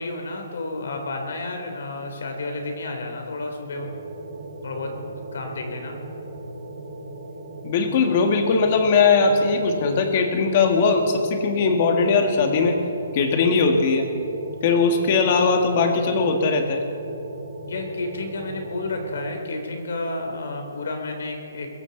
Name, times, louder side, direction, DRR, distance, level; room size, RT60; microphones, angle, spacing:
voice 1, 0.0-3.9 4.6-6.0 17.6-21.7, left 2 dB, 70° left, 3 dB, 3.3 m, -31 dB
sound 1, 3.7-19.3, right 2 dB, 60° right, 3.6 m, -38 dB
voice 2, 7.6-12.8 13.1-14.1 14.6-16.8, left 4 dB, 40° left, 4 dB, 2.0 m, -20 dB
22.5 x 14.0 x 4.1 m, 2.8 s
hypercardioid pair, 160°, 0 cm